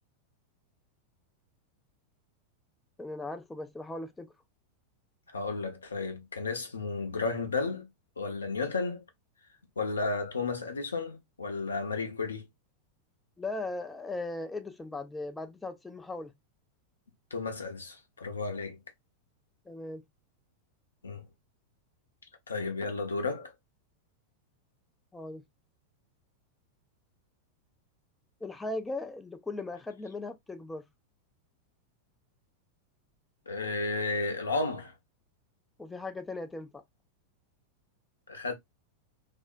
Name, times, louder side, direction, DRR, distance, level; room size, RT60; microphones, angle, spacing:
voice 1, 3.0-4.3 13.4-16.3 19.7-20.0 25.1-25.4 28.4-30.8 35.8-36.8, left 2 dB, 10° left, 0.3 m, -38 dB
voice 2, 5.3-7.9 8.2-9.0 9.8-12.5 17.3-18.8 21.0-21.2 22.5-23.5 33.5-34.9 38.3-38.5, left 3 dB, 75° left, 0.6 m, -33 dB
3.3 x 2.1 x 2.4 m
figure-of-eight pair, 90°, 0 cm